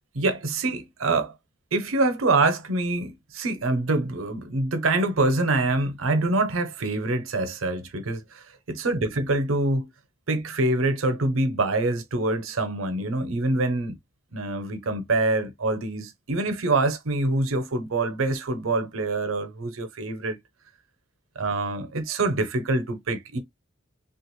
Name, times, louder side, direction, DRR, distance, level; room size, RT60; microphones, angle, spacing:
voice 1, 0.1-1.3 1.7-9.9 10.3-14.0 14.3-20.4 21.4-23.4, right 2 dB, 85° right, 0.7 m, -25 dB
3.3 x 2.4 x 3.0 m
head